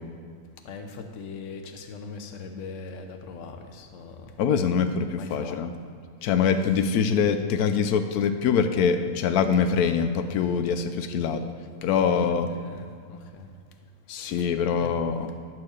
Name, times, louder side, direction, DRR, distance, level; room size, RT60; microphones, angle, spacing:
voice 1, 0.6-4.3 5.2-5.6 12.0-13.5 14.2-14.5 14.7-14.9, left 4 dB, 60° left, 5 dB, 1.1 m, -40 dB
voice 2, 4.4-5.7 6.2-11.5 11.8-12.5 14.1-15.3, left 6 dB, 85° left, 8 dB, 1.1 m, -24 dB
11.5 x 4.7 x 6.5 m, 2.3 s
omnidirectional pair, 1.6 m